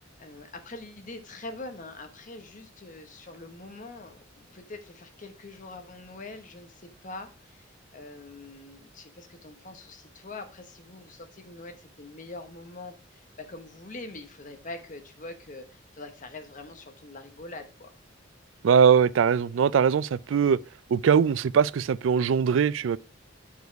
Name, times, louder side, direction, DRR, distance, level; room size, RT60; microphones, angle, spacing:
voice 1, 0.2-17.9, left 2 dB, 40° left, 1.0 m, -44 dB
voice 2, 18.6-20.6 20.9-23.0, right 7 dB, 75° right, 0.3 m, -21 dB
8.1 x 4.7 x 4.5 m
head